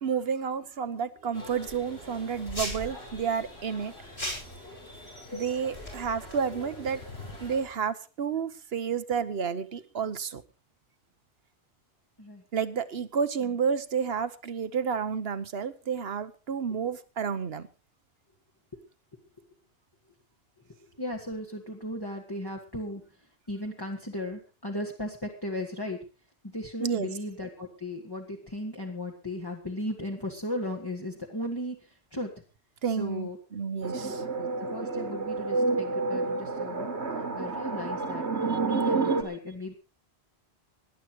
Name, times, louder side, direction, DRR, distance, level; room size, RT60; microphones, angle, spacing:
voice 1, 0.0-3.9 5.3-7.0 7.4-10.4 12.5-17.7 26.8-27.1 32.8-34.2 38.5-38.6, right 6 dB, 65° right, 14 dB, 1.2 m, -30 dB
sound 1, 1.3-7.7, left 2 dB, 70° left, 5.1 m, -45 dB
sound 2, 2.5-2.9 4.2-4.6 5.7-6.3, equal, 55° left, 7.5 m, -36 dB
voice 2, 20.7-26.0 26.4-32.3 32.8-33.4 34.0-36.9 37.3-39.7, left 1 dB, 20° left, 0 dB, 1.8 m, -36 dB
sound 3, 33.8-39.2, right 3 dB, 80° right, 2.3 m, -29 dB
18.5 x 11.0 x 4.6 m, 0.33 s
omnidirectional pair, 1.1 m